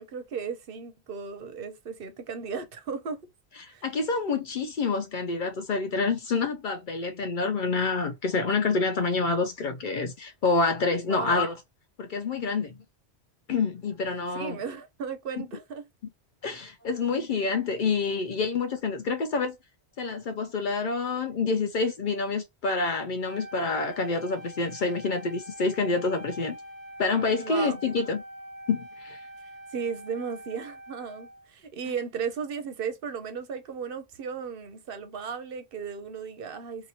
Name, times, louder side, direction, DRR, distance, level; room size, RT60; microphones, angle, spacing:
voice 1, 0.0-3.2 3.7-3.8 11.1-11.5 14.3-15.8 27.4-27.8 29.7-36.9, right 6 dB, 65° right, 0.7 m, -35 dB
voice 2, 3.6-11.5 12.0-12.7 13.5-14.6 15.4-15.5 16.4-19.6 20.0-26.6 27.0-28.2 28.7-29.2, left 4 dB, 60° left, 0.6 m, -27 dB
Wind instrument woodwind instrument, 23.2-31.5, equal, 80° left, 1.3 m, -44 dB
2.8 x 2.5 x 2.7 m
omnidirectional pair, 1.1 m